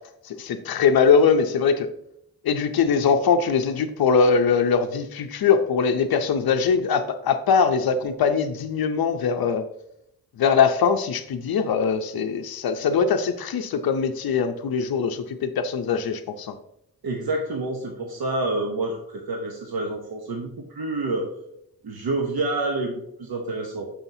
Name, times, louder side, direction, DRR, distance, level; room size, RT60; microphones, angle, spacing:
voice 1, 0.3-1.9 2.4-9.7 10.4-16.6, left 6 dB, 80° left, 6 dB, 0.5 m, -21 dB
voice 2, 17.0-21.3 21.8-22.9 23.2-23.8, right 2 dB, 90° right, 1 dB, 0.9 m, -28 dB
6.3 x 5.6 x 2.7 m, 0.76 s
wide cardioid pair, 140°, 36 cm